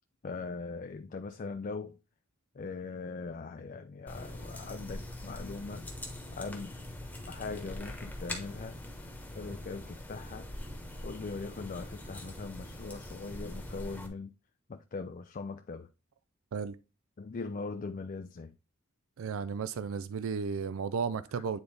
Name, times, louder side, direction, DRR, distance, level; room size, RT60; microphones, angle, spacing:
voice 1, 0.2-2.0 2.5-5.9 6.3-6.7 7.3-8.8 9.3-10.5 11.0-14.3 14.7-15.9 17.2-18.6, left 4 dB, 40° left, 0.4 m, -40 dB
sound 1, 4.1-14.1, left 1 dB, 10° left, 1.1 m, -43 dB
voice 2, 19.2-21.6, right 5 dB, 75° right, 0.4 m, -34 dB
8.9 x 4.0 x 3.3 m
head